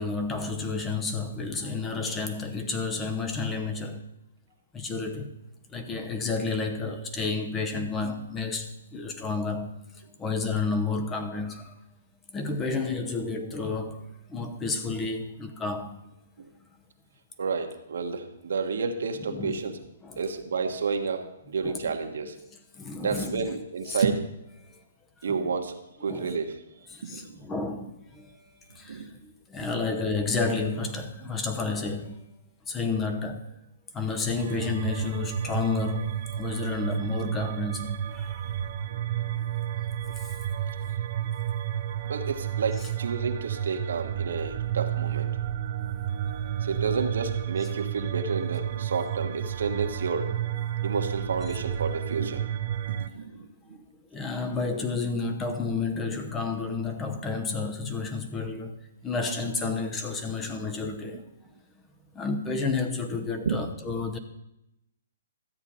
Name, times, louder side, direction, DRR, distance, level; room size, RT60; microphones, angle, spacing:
voice 1, 0.0-4.0 4.7-5.3 5.7-9.8 10.2-11.7 12.3-16.0 19.2-19.7 20.0-20.2 21.6-21.9 22.7-23.5 23.9-24.0 24.7-24.8 25.3-25.5 26.0-26.4 26.9-28.4 28.7-32.2 32.7-33.5 33.9-38.5 40.0-40.3 42.8-42.9 53.7-53.8 54.1-58.8 59.0-61.3 62.1-64.2, left 4 dB, 15° left, 0.8 m, -31 dB
voice 2, 17.4-19.7 20.2-22.3 23.0-24.2 25.2-26.5 27.0-27.4 28.9-29.1 38.4-38.5 38.9-39.0 42.0-45.3 46.6-50.3 50.8-52.6 53.0-53.8 54.7-54.8 63.4-63.6, right 5 dB, 75° right, 1.2 m, -30 dB
sound 1, 34.4-53.1, right 10 dB, 45° right, 0.5 m, -31 dB
13.0 x 8.0 x 4.2 m
hypercardioid pair, 150°, 0 cm